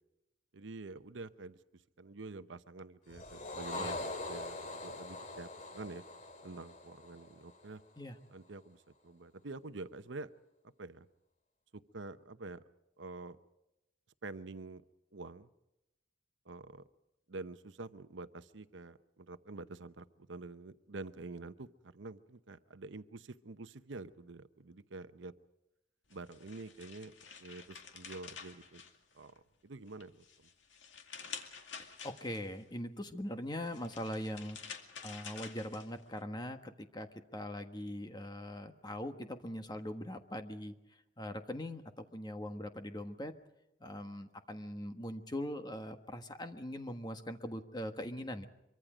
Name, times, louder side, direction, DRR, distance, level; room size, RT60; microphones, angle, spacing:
voice 1, 0.5-1.6 2.0-6.0 6.4-7.8 8.3-10.3 10.8-11.1 11.7-12.6 13.0-13.4 14.2-14.8 15.1-15.5 16.5-16.8 17.3-25.3 26.1-27.1 27.4-28.8 29.1-29.3 29.6-30.2, right 3 dB, 75° right, 12 dB, 0.8 m, -47 dB
sound 1, 3.1-7.7, left 2 dB, 40° left, 2.4 m, -43 dB
sound 2, 26.1-29.5 29.9-32.6 33.5-36.2, left 6 dB, 75° left, 2.2 m, -49 dB
voice 2, 31.8-34.6 35.0-40.7 41.2-43.3 43.8-48.5, left 1 dB, 20° left, 7 dB, 1.4 m, -41 dB
24.5 x 24.0 x 5.1 m, 0.92 s
head